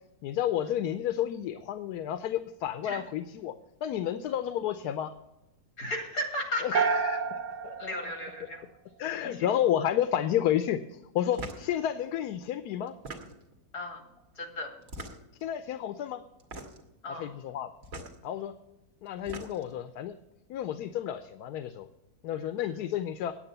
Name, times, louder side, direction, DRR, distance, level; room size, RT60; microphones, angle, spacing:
voice 1, 0.2-3.5 3.8-5.1 6.6-8.1 9.0-12.9 15.4-16.2 17.1-17.7 18.2-18.5 19.0-20.2 20.5-21.9 22.2-23.3, left 10 dB, 80° left, 10 dB, 1.1 m, -31 dB
voice 2, 5.8-6.8 7.7-8.6 9.2-9.5 13.7-14.0 14.3-14.7 17.0-17.3 22.3-22.8, left 1 dB, 60° left, 3 dB, 2.8 m, -35 dB
sound 1, 6.7-9.0, right 5 dB, 80° right, 1.3 m, -30 dB
sound 2, 11.3-11.7 12.9-13.6 14.8-15.4 16.4-16.9 17.8-18.1 19.1-19.7, right 1 dB, 60° right, 2.0 m, -41 dB
8.9 x 8.8 x 6.7 m, 0.92 s
omnidirectional pair, 1.7 m